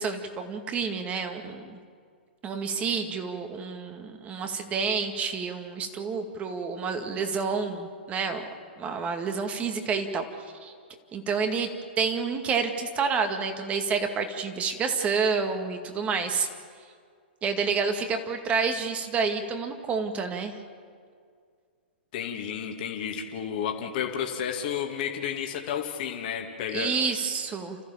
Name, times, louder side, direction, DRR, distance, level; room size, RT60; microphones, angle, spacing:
voice 1, 0.0-1.8 2.4-8.4 8.8-10.2 10.6-10.7 11.1-11.7 12.0-16.5 17.4-20.6 26.7-27.8, right 5 dB, 25° right, 6 dB, 2.1 m, -29 dB
voice 2, 22.1-27.0, left 8 dB, 50° left, 2 dB, 2.4 m, -31 dB
30.0 x 14.5 x 7.3 m, 2.1 s
hypercardioid pair, 115°, 6 cm